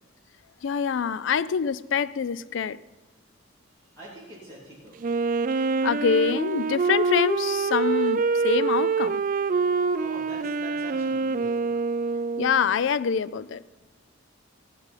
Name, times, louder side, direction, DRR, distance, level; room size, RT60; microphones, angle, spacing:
voice 1, 0.6-2.8 5.8-9.2 12.4-13.6, left 6 dB, 60° left, 0.3 m, -25 dB
voice 2, 3.8-5.1 10.0-11.7, right 1 dB, 20° left, 3.0 m, -44 dB
Wind instrument woodwind instrument, 5.0-12.7, right 4 dB, 40° right, 0.3 m, -25 dB
15.5 x 9.7 x 5.7 m
head